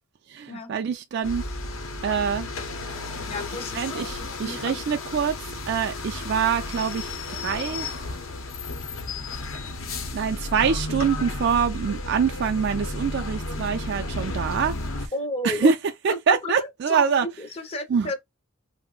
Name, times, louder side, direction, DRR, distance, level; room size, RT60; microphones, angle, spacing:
voice 1, 0.3-1.4 2.0-2.5 3.7-7.9 10.1-14.7 15.0-15.1 15.4-15.8 16.0-17.3 17.9-18.1, right 6 dB, 55° right, 0.3 m, -25 dB
sound 1, 1.2-15.1, left 2 dB, 80° left, 0.8 m, -33 dB
voice 2, 3.3-3.9 4.4-4.8 15.1-15.7 16.1-18.2, left 1 dB, 30° left, 0.5 m, -32 dB
2.4 x 2.0 x 3.7 m
head